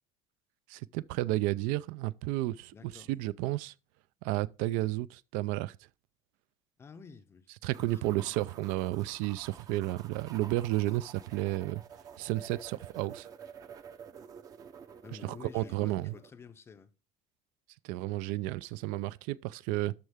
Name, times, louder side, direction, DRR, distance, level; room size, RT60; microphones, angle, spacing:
voice 1, 0.7-3.7 4.2-5.8 7.6-11.8 12.2-13.3 15.2-16.1 17.8-19.9, right 17 dB, 85° right, 0.4 m, -32 dB
voice 2, 2.7-3.1 6.8-7.5 7.8-8.2 14.3-14.4 15.0-16.9, left 5 dB, 20° left, 0.5 m, -50 dB
sound 1, 7.7-16.3, right 7 dB, 25° right, 0.5 m, -50 dB
13.0 x 4.6 x 3.5 m
cardioid pair, 175°, 14 cm